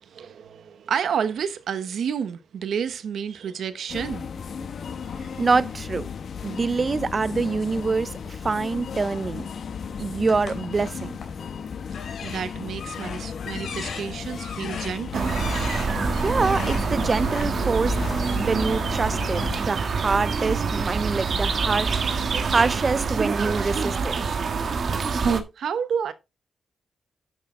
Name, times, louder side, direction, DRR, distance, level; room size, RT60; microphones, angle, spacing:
voice 1, 0.0-4.3 12.2-15.4 25.6-26.1, right 7 dB, 75° right, 0.9 m, -30 dB
sound 1, 3.9-19.6, left 6 dB, 60° left, 0.9 m, -35 dB
voice 2, 5.4-6.1 6.4-9.5 10.0-11.1 16.2-18.0 18.4-24.2, right 4 dB, 30° right, 0.4 m, -25 dB
sound 2, 10.3-11.4 11.9-17.4, left 6 dB, 80° left, 2.8 m, -38 dB
sound 3, 15.1-25.4, right 5 dB, 55° right, 1.4 m, -26 dB
10.5 x 6.1 x 3.7 m
wide cardioid pair, 130°, 0 cm